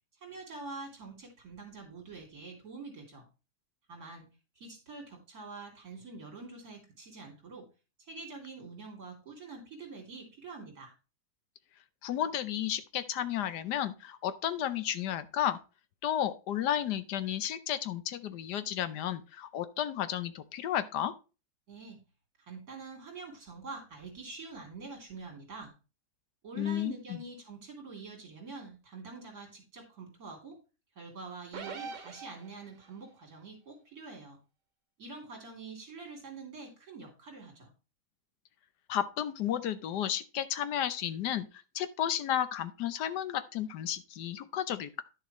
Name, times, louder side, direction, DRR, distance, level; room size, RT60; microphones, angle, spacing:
voice 1, 0.2-3.3 3.9-4.3 4.6-7.7 8.0-10.9 21.7-22.0 22.5-25.7 26.4-30.6 31.0-34.4 35.0-37.7, right 4 dB, 60° right, 2 dB, 3.5 m, -46 dB
voice 2, 12.0-15.6 16.0-21.1 26.6-27.2 38.9-41.5 41.7-45.0, left 10 dB, 75° left, 13 dB, 1.3 m, -32 dB
sound 1, 31.5-32.9, right 5 dB, 80° right, 1.7 m, -43 dB
10.5 x 6.7 x 3.1 m, 0.31 s
omnidirectional pair, 1.9 m